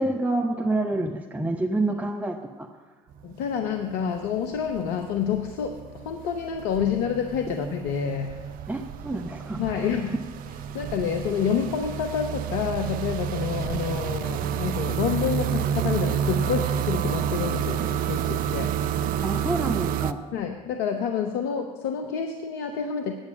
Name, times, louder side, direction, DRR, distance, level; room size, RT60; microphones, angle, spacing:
voice 1, 0.0-2.7 8.7-9.9 19.2-20.2, right 2 dB, 10° right, 3 dB, 0.8 m, -28 dB
sound 1, 3.1-3.6 3.9-20.1, right 9 dB, 55° right, 0.5 m, -29 dB
voice 2, 3.2-8.4 9.6-10.2 10.7-18.8 20.3-23.1, left 7 dB, 65° left, 5 dB, 0.8 m, -28 dB
9.0 x 8.3 x 8.8 m, 1.5 s
hypercardioid pair, 60°, 18 cm